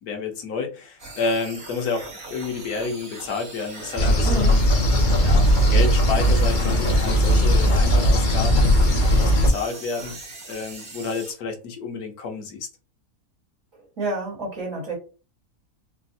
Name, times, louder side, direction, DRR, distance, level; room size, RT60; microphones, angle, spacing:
voice 1, 0.0-4.5 5.2-10.2 10.5-12.7, left 4 dB, 90° left, 3 dB, 1.3 m, -30 dB
sound 1, 1.0-11.3, right 3 dB, 40° right, 1.2 m, -40 dB
sound 2, 4.0-9.5, equal, 45° left, 0.6 m, -18 dB
voice 2, 4.2-4.5 14.0-15.0, right 2 dB, 60° right, -2 dB, 1.8 m, -29 dB
4.2 x 2.0 x 2.6 m, 0.34 s
omnidirectional pair, 1.5 m